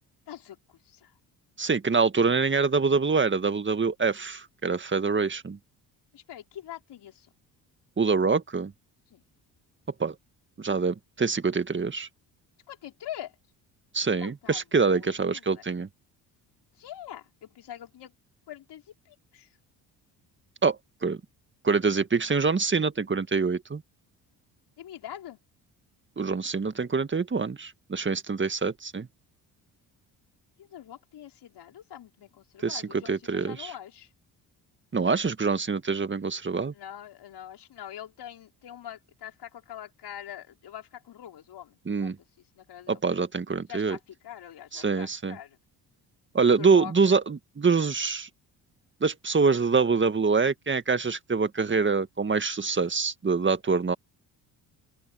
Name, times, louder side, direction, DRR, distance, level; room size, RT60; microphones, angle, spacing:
voice 1, 1.6-5.6 8.0-8.7 10.0-10.1 10.6-12.1 13.9-15.9 20.6-21.2 21.6-23.8 26.2-29.1 32.6-33.7 34.9-36.7 41.9-42.2 42.9-44.0 44.7-45.4 46.3-48.3 49.0-53.9, right 4 dB, 25° right, 1.9 m, -25 dB
voice 2, 6.1-7.3 9.1-9.2 12.7-13.3 14.2-15.6 16.8-18.1 18.5-18.8 19.1-19.5 24.8-25.4 30.7-34.1 36.7-42.1 42.6-43.0 43.7-44.0 44.2-45.6 46.5-47.1, left 11 dB, 65° left, 5.7 m, -43 dB
open air
supercardioid pair, 65°, 44 cm